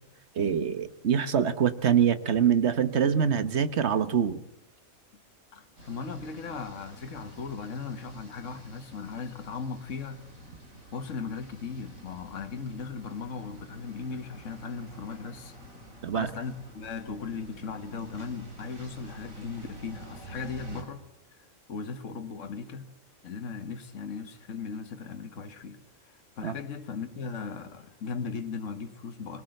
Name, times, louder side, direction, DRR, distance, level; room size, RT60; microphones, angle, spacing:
voice 1, 0.4-4.4 16.0-16.3 26.4-26.5, right 8 dB, 55° right, 1.3 m, -24 dB
voice 2, 5.5-10.2 10.9-15.6 16.1-21.0 21.7-22.9 23.2-29.4, left 5 dB, 60° left, 1.8 m, -37 dB
sound 1, 5.8-20.8, right 1 dB, 70° right, 5.1 m, -49 dB
22.0 x 20.0 x 7.9 m
omnidirectional pair, 1.4 m